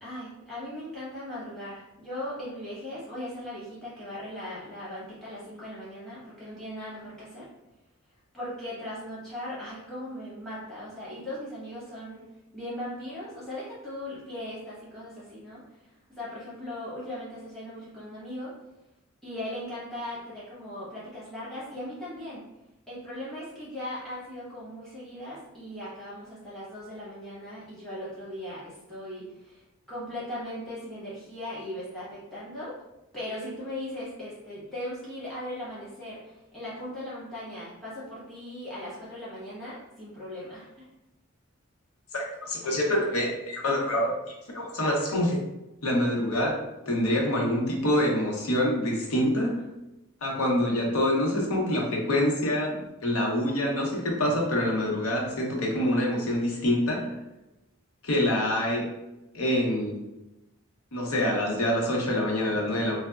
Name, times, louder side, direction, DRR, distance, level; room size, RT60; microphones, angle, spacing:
voice 1, 0.0-7.4 8.3-12.2 12.5-15.6 16.2-18.5 19.2-22.4 22.9-29.6 29.9-32.7 33.1-40.8, left 1 dB, ahead, -11 dB, 1.0 m, -38 dB
voice 2, 42.1-44.1 44.5-45.4 45.8-46.6 46.9-49.6 50.2-57.1 58.0-58.9 59.3-60.0 60.9-63.0, left 1 dB, 85° left, -1 dB, 0.7 m, -26 dB
3.2 x 2.0 x 2.3 m, 0.97 s
head